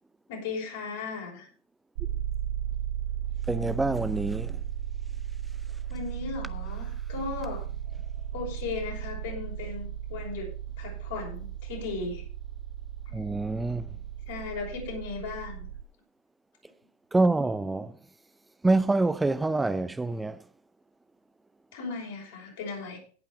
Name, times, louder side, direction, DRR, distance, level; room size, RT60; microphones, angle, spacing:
voice 1, 0.3-1.5 5.9-7.6 8.3-10.5 10.8-12.2 14.3-15.7 21.7-23.0, left 4 dB, 70° left, 5.9 m, -36 dB
sound 1, 1.9-15.8, right 10 dB, 65° right, 0.7 m, -35 dB
voice 2, 3.5-4.6 13.1-13.9 17.1-17.9 18.6-20.4, right 2 dB, 10° right, 0.5 m, -26 dB
17.0 x 5.7 x 4.9 m
hypercardioid pair, 95°, 0 cm